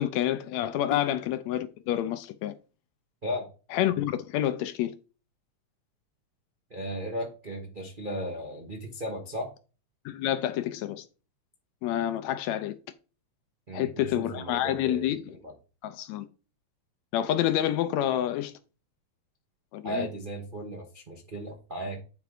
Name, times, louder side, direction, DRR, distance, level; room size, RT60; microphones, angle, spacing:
voice 1, 0.0-2.5 3.7-5.0 10.1-11.1 11.8-12.8 13.7-15.4 15.8-16.3 17.1-18.5 19.7-20.1, left 12 dB, 75° left, 1.7 m, -28 dB
voice 2, 6.7-9.5 13.7-15.1 15.4-15.5 19.8-22.0, equal, 80° right, 0.4 m, -35 dB
9.5 x 3.8 x 4.8 m
omnidirectional pair, 3.4 m